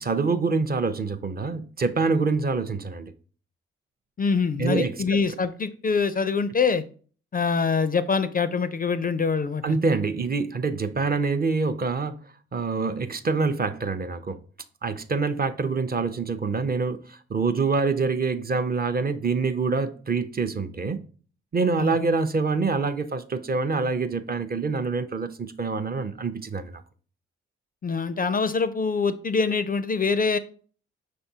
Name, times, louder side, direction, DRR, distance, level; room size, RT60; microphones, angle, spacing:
voice 1, 0.0-3.1 4.6-4.9 9.6-12.2 12.5-14.4 14.8-21.0 21.5-26.8, right 4 dB, 30° right, 0.5 m, -26 dB
voice 2, 4.2-6.8 7.3-9.8 21.8-22.0 27.8-30.4, left 5 dB, 30° left, 0.4 m, -24 dB
5.2 x 3.5 x 2.7 m
hypercardioid pair, 40°, 29 cm